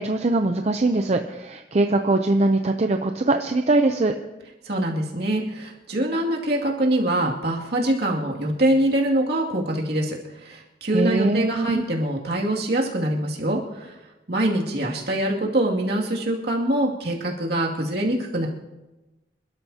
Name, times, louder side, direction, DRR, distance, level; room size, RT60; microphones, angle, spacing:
voice 1, 0.0-4.1 10.9-11.8, right 2 dB, 35° right, 6 dB, 0.6 m, -22 dB
voice 2, 4.6-13.9 14.3-18.5, right 1 dB, 60° right, -2 dB, 2.4 m, -24 dB
27.0 x 12.5 x 2.8 m, 1.1 s
head